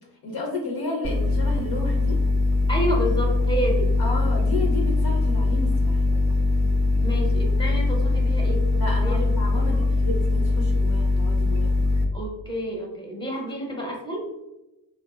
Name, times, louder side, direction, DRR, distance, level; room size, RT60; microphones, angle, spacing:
voice 1, 0.2-2.2 4.0-6.0 8.8-11.7 13.3-13.4, left 2 dB, 50° left, 0 dB, 0.6 m, -32 dB
sound 1, 1.0-12.1, left 2 dB, 35° right, 0.5 m, -21 dB
voice 2, 2.7-3.9 7.0-9.6 10.0-10.1 12.1-14.3, equal, 10° left, 0 dB, 0.8 m, -30 dB
2.6 x 2.1 x 2.3 m, 0.97 s
hypercardioid pair, 45°, 49 cm